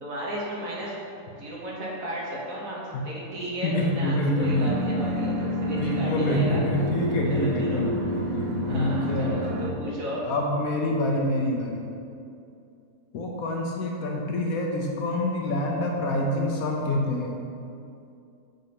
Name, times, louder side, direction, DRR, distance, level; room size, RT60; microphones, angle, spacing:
voice 1, 0.0-1.0 1.3-6.6 7.2-7.9 8.7-10.2, right 1 dB, 60° right, -5 dB, 1.6 m, -34 dB
voice 2, 3.6-4.9 5.8-8.1 8.7-9.5 10.3-11.9 13.1-17.5, left 1 dB, 70° left, 0 dB, 1.0 m, -26 dB
sound 1, 4.4-9.7, equal, 75° right, 1.1 m, -28 dB
7.5 x 2.7 x 5.2 m, 2.6 s
omnidirectional pair, 1.7 m